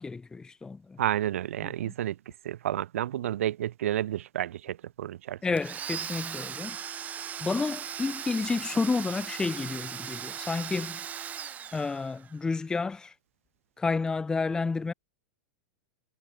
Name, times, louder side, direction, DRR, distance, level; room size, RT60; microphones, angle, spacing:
voice 1, 0.0-1.0 1.8-1.9 5.4-6.8 7.4-11.0 11.7-13.1 13.8-14.9, left 4 dB, 10° left, 0.9 m, -30 dB
voice 2, 1.0-2.2 2.4-5.4, right 12 dB, 85° right, 1.0 m, -30 dB
Domestic sounds home sounds, 5.6-12.4, right 9 dB, 20° right, 0.6 m, -38 dB
supercardioid pair, 140°, 7 cm